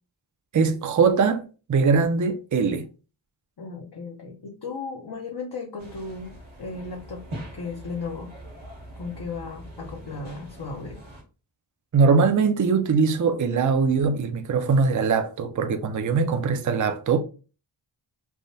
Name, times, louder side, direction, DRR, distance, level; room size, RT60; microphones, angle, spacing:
voice 1, 0.5-2.8 11.9-17.2, right 5 dB, 40° right, 0.4 m, -21 dB
voice 2, 3.6-7.2 7.5-8.3 9.0-11.0, left 4 dB, 55° left, 0.6 m, -35 dB
sound 1, 5.8-11.2, right 1 dB, 75° right, 1.3 m, -42 dB
3.4 x 2.1 x 2.6 m
wide cardioid pair, 45°, 50 cm